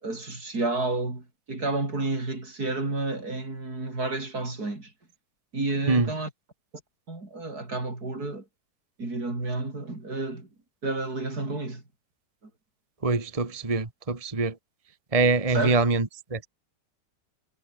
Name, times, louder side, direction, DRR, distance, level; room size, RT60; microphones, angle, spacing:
voice 1, 0.0-4.9 5.5-6.3 7.1-8.4 9.0-10.5 10.8-11.8 15.5-15.9, right 2 dB, 60° right, 5.9 m, -30 dB
voice 2, 13.0-14.5 15.1-16.5, right 3 dB, 20° right, 1.7 m, -24 dB
omnidirectional pair, 1.8 m